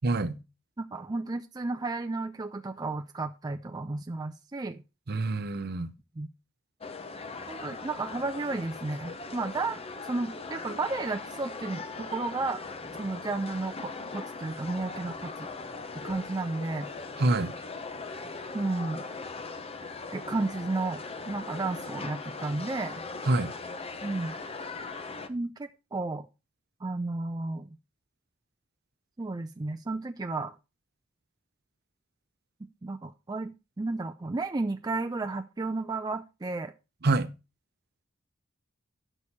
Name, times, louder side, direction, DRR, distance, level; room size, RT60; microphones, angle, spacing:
voice 1, 0.0-0.4 5.1-5.9 17.2-17.5 23.3-23.5 37.0-37.3, right 2 dB, 50° right, 0.8 m, -26 dB
voice 2, 0.8-4.8 6.2-6.3 7.5-12.6 13.0-15.3 16.0-16.9 18.5-19.0 20.1-23.0 24.0-24.3 25.3-26.3 26.8-27.8 29.2-30.5 32.8-36.7, right 3 dB, 20° right, 0.4 m, -33 dB
sound 1, 6.8-25.3, left 4 dB, 30° left, 0.8 m, -40 dB
10.0 x 6.3 x 4.2 m
head